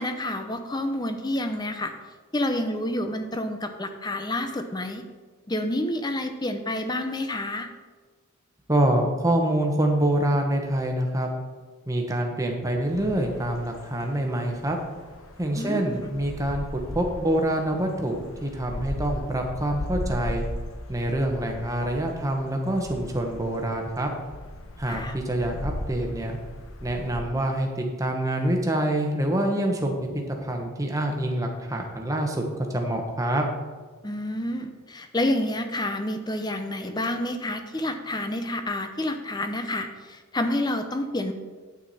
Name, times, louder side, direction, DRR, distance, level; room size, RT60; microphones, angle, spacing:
voice 1, 0.0-1.9 2.3-5.0 5.5-7.7 15.6-16.0 24.9-25.2 34.0-41.3, left 1 dB, 20° left, 7 dB, 0.7 m, -29 dB
voice 2, 8.7-11.3 11.9-14.8 15.4-16.6 16.9-20.4 20.9-24.1 24.8-26.4 26.8-32.4 32.7-33.4, right 1 dB, 15° right, 2 dB, 1.2 m, -26 dB
sound 1, 12.9-27.2, left 1 dB, 60° left, 1.0 m, -38 dB
9.1 x 8.5 x 4.2 m, 1.4 s
head